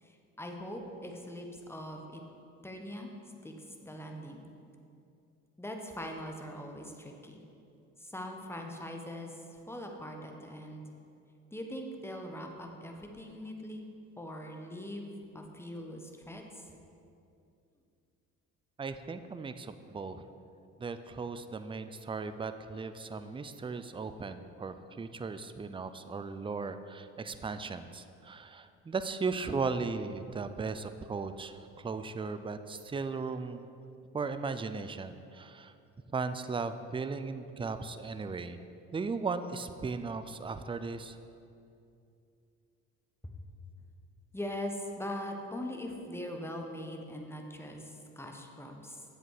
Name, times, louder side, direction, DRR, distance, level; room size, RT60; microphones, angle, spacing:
voice 1, 0.0-2.2 2.6-3.1 3.4-4.4 5.6-7.4 8.0-10.8 11.5-13.9 14.2-16.7 44.3-49.0, left 1 dB, 5° left, 2 dB, 1.3 m, -41 dB
voice 2, 18.8-20.2 20.8-33.6 34.1-35.7 36.1-38.6 38.9-41.2, right 4 dB, 15° right, 10 dB, 0.5 m, -37 dB
8.2 x 7.5 x 4.9 m, 2.6 s
hypercardioid pair, 55°, 39 cm